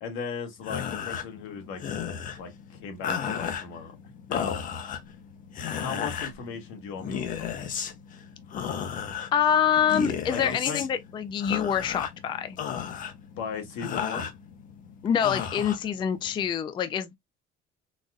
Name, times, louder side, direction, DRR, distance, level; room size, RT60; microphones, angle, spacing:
voice 1, 0.0-3.9 4.3-4.6 5.7-7.6 10.3-10.8 13.4-14.3, left 6 dB, 80° left, 1.4 m, -37 dB
sound 1, 0.6-16.5, left 8 dB, 45° left, 0.7 m, -35 dB
voice 2, 9.3-12.6 15.0-17.2, left 8 dB, 25° left, 0.3 m, -26 dB
4.0 x 2.4 x 2.2 m
cardioid pair, 135°, 20 cm